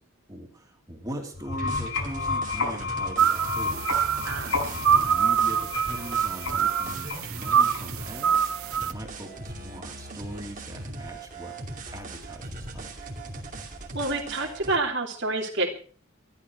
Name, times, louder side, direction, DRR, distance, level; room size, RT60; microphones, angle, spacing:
voice 1, 0.3-11.6 11.9-12.9, right 1 dB, 15° right, 1 dB, 2.8 m, -41 dB
sound 1, 1.3-8.1, left 4 dB, 70° left, 5.3 m, -32 dB
sound 2, 1.5-14.8, right 2 dB, 35° right, 2.7 m, -40 dB
sound 3, 3.2-8.9, right 8 dB, 85° right, 0.7 m, -25 dB
voice 2, 4.2-4.6 13.9-15.7, right 2 dB, 55° right, -1 dB, 2.9 m, -28 dB
13.5 x 12.5 x 6.1 m, 0.41 s
head